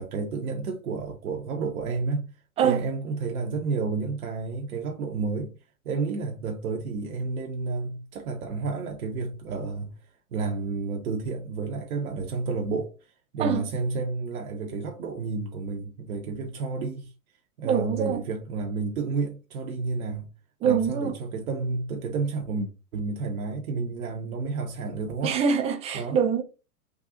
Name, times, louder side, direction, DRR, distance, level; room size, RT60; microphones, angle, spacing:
voice 1, 0.0-2.3 2.6-5.5 5.8-9.9 10.3-17.1 17.6-20.3 20.6-25.3 25.9-26.2, right 4 dB, 70° right, 0.8 m, -31 dB
voice 2, 17.6-18.2 20.6-21.1 25.2-26.4, right 7 dB, 15° right, 0.4 m, -24 dB
3.6 x 2.3 x 2.6 m
hypercardioid pair, 105°, 44 cm